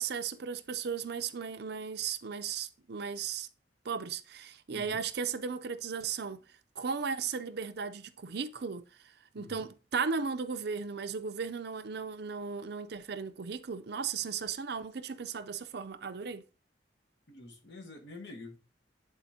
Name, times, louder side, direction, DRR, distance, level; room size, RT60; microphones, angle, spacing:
voice 1, 0.0-3.5 3.8-6.4 6.8-8.8 9.3-16.4, right 6 dB, 65° right, 0.6 m, -36 dB
voice 2, 9.4-9.7 17.3-18.6, left 2 dB, 80° left, 1.5 m, -47 dB
9.8 x 4.3 x 2.8 m
head